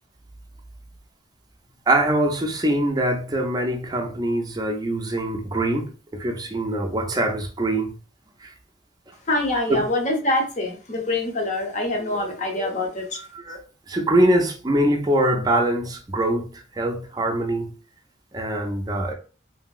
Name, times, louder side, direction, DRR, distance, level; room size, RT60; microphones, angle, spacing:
voice 1, 1.9-8.0 8.4-8.5 9.7-9.9 12.1-12.3 13.3-13.6 13.9-16.5 16.8-17.7 18.3-19.1, right 1 dB, 20° right, 0.4 m, -23 dB
voice 2, 9.3-13.2, left 2 dB, 40° left, 0.7 m, -25 dB
2.9 x 2.7 x 2.3 m
head